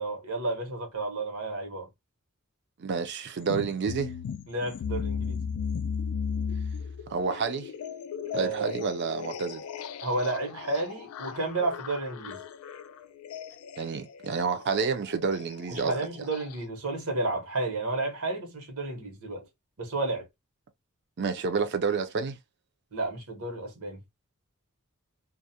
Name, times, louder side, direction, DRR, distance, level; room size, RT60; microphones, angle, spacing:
voice 1, 0.0-1.9 4.5-5.4 8.3-8.8 10.0-12.4 15.7-19.5 19.8-20.3 22.9-24.0, right 2 dB, 85° right, 1.0 m, -31 dB
voice 2, 2.8-4.1 7.1-7.7 8.3-9.6 13.8-16.0 21.2-22.4, right 5 dB, 55° right, 0.5 m, -29 dB
sound 1, 3.4-16.7, left 6 dB, 80° left, 0.3 m, -36 dB
2.3 x 2.1 x 2.7 m
head